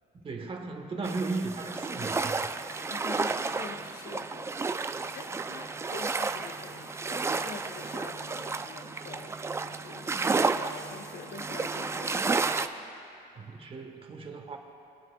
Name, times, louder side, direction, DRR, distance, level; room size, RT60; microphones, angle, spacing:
voice 1, 0.1-2.5 13.3-14.6, right 3 dB, 30° right, 4 dB, 1.2 m, -36 dB
sound 1, 1.0-12.7, right 4 dB, 15° right, 0.3 m, -32 dB
voice 2, 2.9-4.7 5.1-10.2 10.6-12.5, left 5 dB, 55° left, 8 dB, 0.7 m, -46 dB
22.5 x 9.0 x 2.3 m, 2.6 s
cardioid pair, 110°, 17 cm